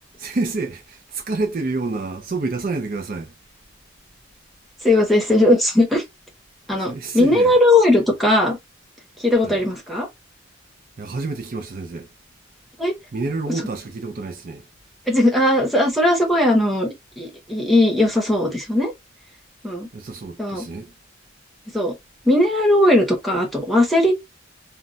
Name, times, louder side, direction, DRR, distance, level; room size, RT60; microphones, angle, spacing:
voice 1, 0.2-3.3 6.8-7.5 9.4-9.6 11.0-12.1 13.1-14.6 19.9-20.9, right 3 dB, 45° right, 0.5 m, -28 dB
voice 2, 4.8-6.0 6.7-8.6 9.2-10.1 12.8-12.9 13.5-13.6 15.1-16.9 17.2-18.9 19.6-19.9 20.4-20.7 21.7-21.9 22.2-24.1, left 1 dB, ahead, 0.8 m, -18 dB
2.2 x 2.1 x 3.8 m
head